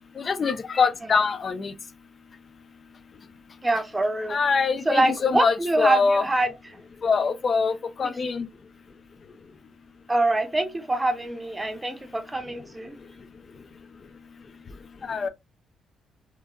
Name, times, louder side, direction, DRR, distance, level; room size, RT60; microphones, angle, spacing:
voice 1, 0.2-1.7 4.3-6.2 7.0-8.5 15.1-15.3, left 5 dB, 40° left, 0.4 m, -24 dB
voice 2, 3.6-4.4 4.9-6.5 8.0-8.1 10.1-12.9, right 2 dB, 15° right, 0.6 m, -25 dB
3.0 x 2.2 x 2.3 m
cardioid pair, 90°, 0 cm